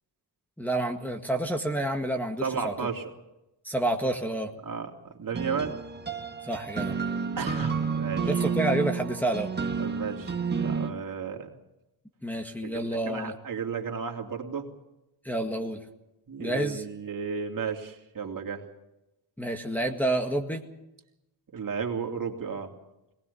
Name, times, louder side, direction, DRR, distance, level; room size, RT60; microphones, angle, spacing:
voice 1, 0.6-2.9 3.6-4.5 6.4-7.0 8.3-9.5 12.2-13.3 15.2-15.8 16.4-16.8 19.4-20.6, right 1 dB, 5° left, 1 dB, 1.9 m, -29 dB
voice 2, 2.4-3.0 4.6-5.8 7.4-8.3 9.8-10.3 10.6-11.5 12.6-14.7 16.3-18.6 21.5-22.7, right 6 dB, 50° right, 2 dB, 3.1 m, -33 dB
sound 1, 5.3-10.9, right 5 dB, 25° right, 1.9 m, -30 dB
22.0 x 20.0 x 7.0 m, 0.92 s
wide cardioid pair, 120°, 43 cm